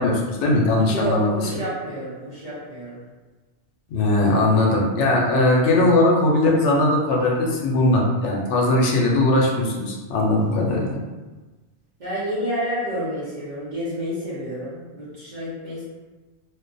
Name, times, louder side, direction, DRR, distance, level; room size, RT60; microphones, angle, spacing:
voice 1, 0.0-1.3 3.9-10.9, left 2 dB, 75° left, -2 dB, 0.9 m, -19 dB
voice 2, 0.8-3.0 12.0-15.8, equal, 45° right, -9 dB, 0.8 m, -29 dB
2.4 x 2.2 x 2.5 m, 1.2 s
omnidirectional pair, 1.2 m